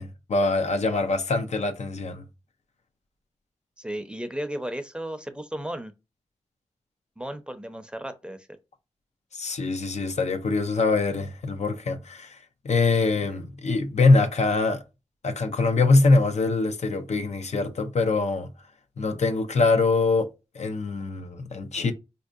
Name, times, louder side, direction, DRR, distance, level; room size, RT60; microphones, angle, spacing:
voice 1, 0.0-2.2 9.3-12.4 12.6-14.8 15.2-18.5 19.0-20.3 20.5-21.9, left 3 dB, 70° left, 0.5 m, -23 dB
voice 2, 3.8-5.9 7.2-8.5 13.3-13.4, right 1 dB, 10° right, 0.6 m, -34 dB
4.2 x 2.7 x 2.4 m
cardioid pair, 50°, 12 cm